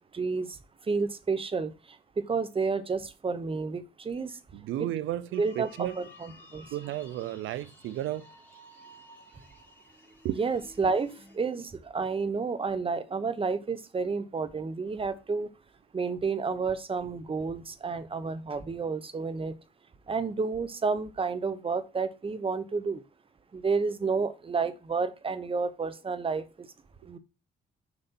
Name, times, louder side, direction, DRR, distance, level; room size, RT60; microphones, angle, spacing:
voice 1, 0.1-0.5 0.9-1.7 2.2-4.3 5.4-6.6 10.3-15.5 15.9-19.5 20.1-23.0 23.5-26.4 27.1-27.2, right 4 dB, 25° right, 1.0 m, -30 dB
voice 2, 4.5-6.0 6.7-8.3 10.2-10.4, right 13 dB, 80° right, 0.5 m, -33 dB
sound 1, 5.3-11.4, left 1 dB, 10° left, 3.2 m, -54 dB
7.0 x 5.2 x 4.3 m
cardioid pair, 90°, 20 cm